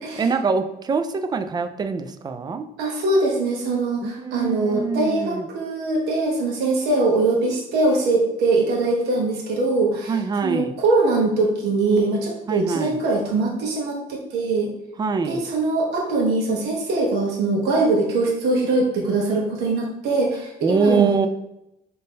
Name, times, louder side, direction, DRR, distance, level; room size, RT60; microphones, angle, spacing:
voice 1, 0.2-2.7 4.0-5.4 10.1-10.7 12.5-13.0 15.0-15.4 20.6-21.3, right 4 dB, 25° right, 8 dB, 0.3 m, -24 dB
voice 2, 2.8-14.7 15.2-21.2, right 2 dB, 80° right, -2 dB, 1.0 m, -22 dB
3.6 x 2.7 x 4.0 m, 0.86 s
cardioid pair, 110°, 17 cm